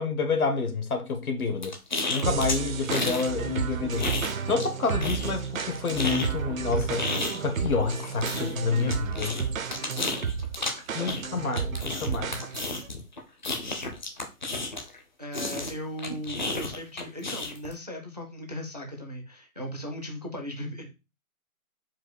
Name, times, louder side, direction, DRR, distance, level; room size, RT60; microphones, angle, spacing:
voice 1, 0.0-1.7 2.1-4.1 4.5-7.1 7.4-9.4 10.9-12.4, left 4 dB, 70° left, 1.3 m, -28 dB
sound 1, 1.6-3.3 3.5-4.7 5.0-15.0 15.3-17.7, left 2 dB, 30° left, 0.6 m, -32 dB
sound 2, 2.2-12.9, right 7 dB, 65° right, 0.7 m, -32 dB
voice 2, 15.2-20.9, equal, 30° right, 0.4 m, -37 dB
4.6 x 2.3 x 4.5 m
hypercardioid pair, 160°, 44 cm